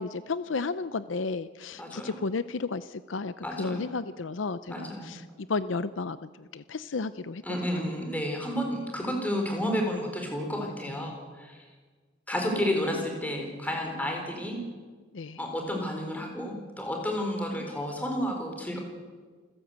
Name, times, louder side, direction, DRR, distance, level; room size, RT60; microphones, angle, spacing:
voice 1, 0.0-5.2 5.5-7.8 15.1-15.4, left 4 dB, 80° left, 14 dB, 0.6 m, -33 dB
voice 2, 1.8-2.2 3.4-3.9 4.7-5.2 7.4-11.6 12.3-14.6 15.4-18.8, equal, 10° left, 1 dB, 4.4 m, -31 dB
28.0 x 15.5 x 8.2 m, 1.5 s
head